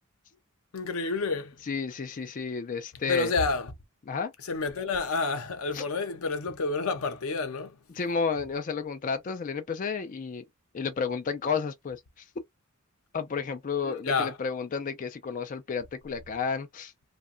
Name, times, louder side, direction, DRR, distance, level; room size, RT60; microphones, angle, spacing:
voice 1, 0.7-1.6 3.0-3.7 4.4-7.8 13.8-14.4, left 4 dB, 90° left, 0.6 m, -29 dB
voice 2, 1.7-3.3 4.1-4.3 5.7-5.8 8.0-10.4 10.7-12.2 13.1-16.9, left 5 dB, 40° left, 0.4 m, -31 dB
2.8 x 2.2 x 2.5 m
head